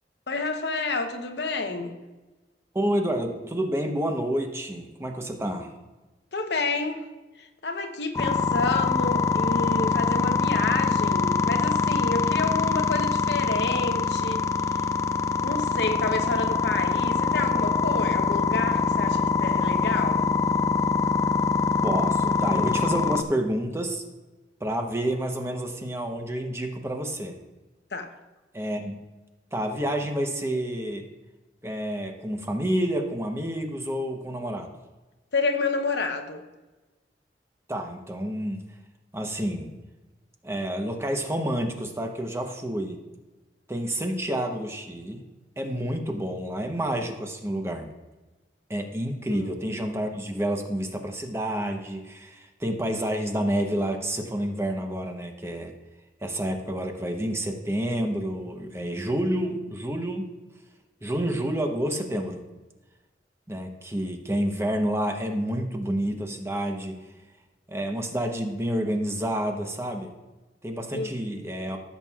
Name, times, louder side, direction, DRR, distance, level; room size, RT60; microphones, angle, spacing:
voice 1, 0.3-2.0 6.3-7.1 7.4-14.4 15.4-20.3 27.9-28.1 35.3-36.4 49.3-49.5 70.9-71.1, left 3 dB, 70° left, 0.9 m, -29 dB
voice 2, 2.7-5.7 21.8-24.0 24.6-27.4 28.5-29.0 29.5-31.1 31.6-34.7 37.7-38.6 39.1-39.7 40.4-43.0 43.7-45.2 45.6-47.9 48.7-55.7 56.2-60.3 61.0-62.4 63.5-67.0 67.7-70.1 70.6-71.8, right 1 dB, 15° right, 0.9 m, -29 dB
sound 1, 8.1-23.2, left 4 dB, 15° left, 0.4 m, -24 dB
15.0 x 7.4 x 2.4 m
head